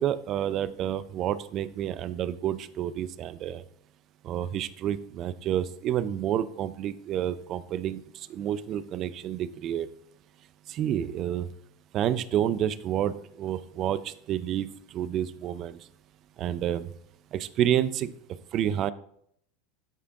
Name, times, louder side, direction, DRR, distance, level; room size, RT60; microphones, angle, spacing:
voice 1, 0.0-3.6 4.2-9.9 10.7-11.5 11.9-15.8 16.4-16.9 17.3-18.1 18.5-18.9, right 10 dB, 45° right, 16 dB, 0.5 m, -29 dB
12.5 x 5.1 x 2.5 m, 0.68 s
hypercardioid pair, 100°, 0 cm